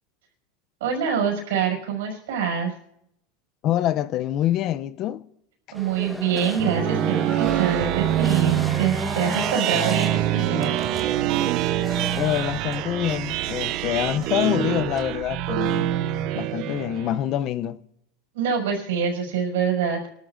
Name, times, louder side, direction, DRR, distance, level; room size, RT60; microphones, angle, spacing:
voice 1, 0.8-2.7 5.7-10.8 18.3-20.1, right 7 dB, 85° right, 5.8 m, -25 dB
voice 2, 3.6-5.2 12.1-16.0 16.3-17.8, left 12 dB, 45° left, 0.5 m, -25 dB
sound 1, 5.7-13.8, equal, ahead, 1.3 m, -34 dB
sound 2, 6.3-17.2, right 13 dB, 55° right, 0.7 m, -25 dB
sound 3, 9.9-15.1, right 5 dB, 30° right, 2.8 m, -43 dB
29.0 x 13.0 x 2.6 m
supercardioid pair, 130°, 0 cm